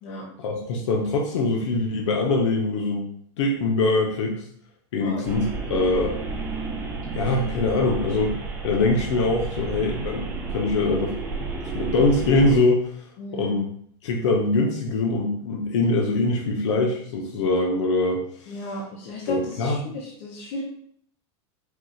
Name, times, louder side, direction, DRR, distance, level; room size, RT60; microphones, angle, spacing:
voice 1, 0.4-4.4 4.9-6.2 7.1-8.4 8.6-11.2 11.7-13.0 13.3-13.6 14.0-18.6 19.3-19.8, left 2 dB, 80° left, 0 dB, 0.7 m, -23 dB
sound 1, 5.2-12.6, right 3 dB, 15° right, 0.5 m, -32 dB
voice 2, 13.2-13.5 18.5-20.6, left 1 dB, 45° left, -2 dB, 0.8 m, -34 dB
4.7 x 2.3 x 3.9 m, 0.64 s
supercardioid pair, 165°, 15 cm